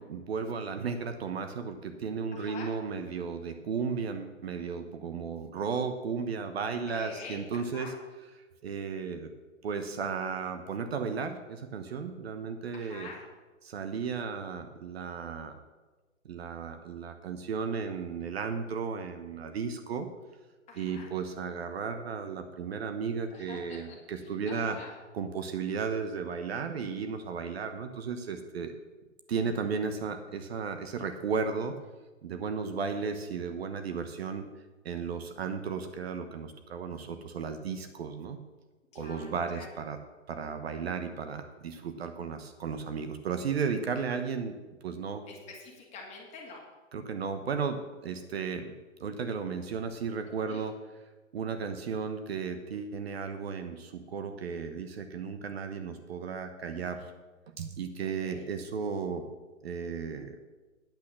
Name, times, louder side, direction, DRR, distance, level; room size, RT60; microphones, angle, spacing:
voice 1, 0.1-7.9 8.6-9.3 9.6-13.1 13.6-15.6 16.2-20.1 20.8-24.8 25.1-28.7 29.3-31.7 32.2-34.4 34.8-38.4 38.9-40.0 40.3-44.5 44.8-45.2 46.9-48.7 49.0-50.8 51.3-57.1 57.6-59.3 59.6-60.4, right 5 dB, 50° right, 8 dB, 1.1 m, -34 dB
voice 2, 2.3-2.7 6.7-7.9 12.7-13.2 20.7-21.1 23.3-24.9 38.9-39.7 45.3-46.6 50.4-50.6 58.0-58.4, left 3 dB, 15° left, -1 dB, 2.1 m, -46 dB
9.0 x 8.2 x 6.4 m, 1.3 s
hypercardioid pair, 140°, 39 cm